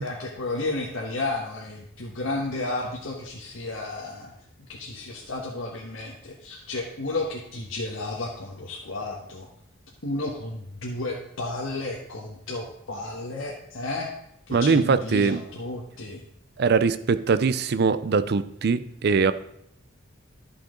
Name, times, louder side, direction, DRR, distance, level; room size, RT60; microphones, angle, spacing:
voice 1, 0.0-4.3 4.7-9.5 10.0-14.1 14.5-16.2, left 2 dB, 80° left, -2 dB, 1.3 m, -32 dB
voice 2, 14.5-15.4 16.6-19.3, right 5 dB, 55° right, 13 dB, 0.5 m, -22 dB
12.5 x 5.8 x 3.8 m, 0.72 s
head